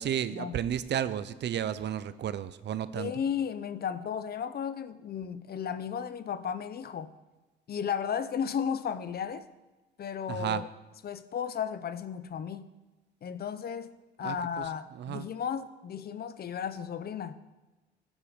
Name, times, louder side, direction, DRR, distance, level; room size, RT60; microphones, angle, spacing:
voice 1, 0.0-3.1 10.3-10.6 14.2-15.3, right 9 dB, 60° right, 0.6 m, -33 dB
voice 2, 2.9-7.1 7.7-9.5 10.0-10.7 11.0-12.7 13.2-17.3, left 7 dB, 50° left, 0.7 m, -34 dB
14.5 x 7.4 x 5.1 m
cardioid pair, 90°, 20 cm